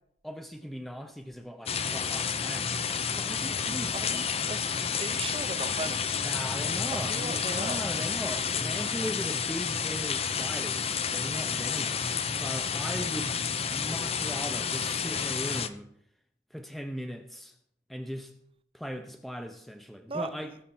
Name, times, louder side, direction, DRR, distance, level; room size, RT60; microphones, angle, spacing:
voice 1, 0.2-2.8 3.2-4.3 6.1-13.3 13.7-15.9 16.5-17.5 17.9-18.3 18.7-20.5, equal, ahead, 5 dB, 0.7 m, -39 dB
sound 1, 1.7-15.7, left 6 dB, 35° left, 0.7 m, -30 dB
voice 2, 3.9-4.7 5.0-6.4 6.9-7.9 20.1-20.3, right 3 dB, 30° right, 13 dB, 0.7 m, -37 dB
19.5 x 7.3 x 4.4 m, 0.70 s
head